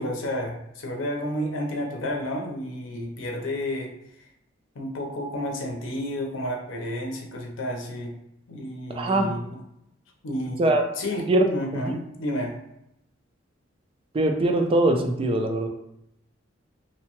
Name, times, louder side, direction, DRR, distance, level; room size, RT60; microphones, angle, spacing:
voice 1, 0.0-3.9 4.8-8.2 8.5-9.6 10.2-12.6, left 1 dB, 90° left, 1 dB, 0.6 m, -31 dB
voice 2, 8.9-9.3 10.6-10.9 11.3-11.5 11.7-11.8 14.1-15.7, right 2 dB, 30° right, 4 dB, 0.3 m, -21 dB
2.7 x 2.1 x 2.9 m, 0.80 s
head